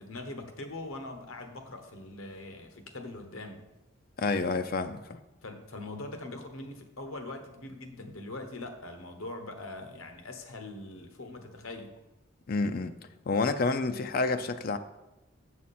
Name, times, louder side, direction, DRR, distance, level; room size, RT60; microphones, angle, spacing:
voice 1, 0.0-3.6 5.4-11.9, left 2 dB, 85° left, 6 dB, 1.1 m, -42 dB
voice 2, 4.2-5.2 12.5-12.9 13.3-14.8, left 3 dB, 45° left, 9 dB, 0.4 m, -29 dB
7.3 x 7.3 x 4.2 m, 0.98 s
head